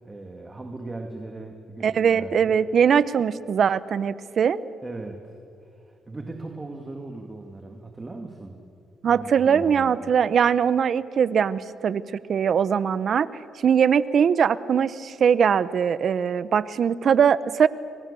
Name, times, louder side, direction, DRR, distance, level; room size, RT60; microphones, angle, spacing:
voice 1, 0.0-2.5 4.8-8.7 9.1-10.0, right 2 dB, 20° right, 4 dB, 2.4 m, -38 dB
voice 2, 1.8-4.6 9.0-12.0 12.3-13.3 13.6-17.7, right 7 dB, 55° right, 17 dB, 0.9 m, -21 dB
29.5 x 23.0 x 7.0 m, 2.5 s
cardioid pair, 90°, 0 cm